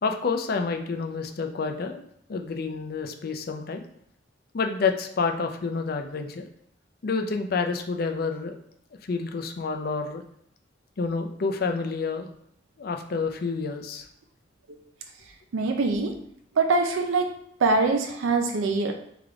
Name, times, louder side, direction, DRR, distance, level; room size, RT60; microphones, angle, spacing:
voice 1, 0.0-2.0 2.3-3.8 4.5-6.5 7.0-8.6 9.0-10.2 11.0-12.3 12.8-14.1, left 4 dB, 50° left, 5 dB, 0.5 m, -28 dB
voice 2, 15.5-16.2 16.5-18.9, right 3 dB, 80° right, 4 dB, 0.5 m, -24 dB
3.6 x 3.3 x 3.7 m, 0.70 s
head